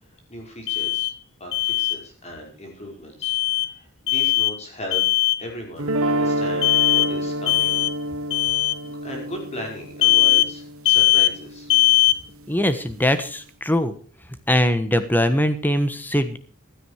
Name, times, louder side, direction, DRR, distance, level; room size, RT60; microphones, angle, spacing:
voice 1, 0.3-1.1 1.4-5.0 5.4-7.8 8.8-11.7, equal, 30° left, 1 dB, 5.3 m, -37 dB
Alarm, 0.7-1.1 1.5-2.0 3.2-3.7 4.1-4.6 4.9-5.4 6.6-7.1 7.5-7.9 8.3-8.7 10.0-10.5 10.9-11.3 11.7-12.2, left 18 dB, 60° left, 0.8 m, -19 dB
sound 1, 5.8-11.9, right 1 dB, 65° right, 1.5 m, -28 dB
voice 2, 12.5-13.9 14.5-16.4, left 1 dB, 10° left, 11 dB, 1.4 m, -21 dB
16.0 x 13.0 x 4.9 m, 0.40 s
head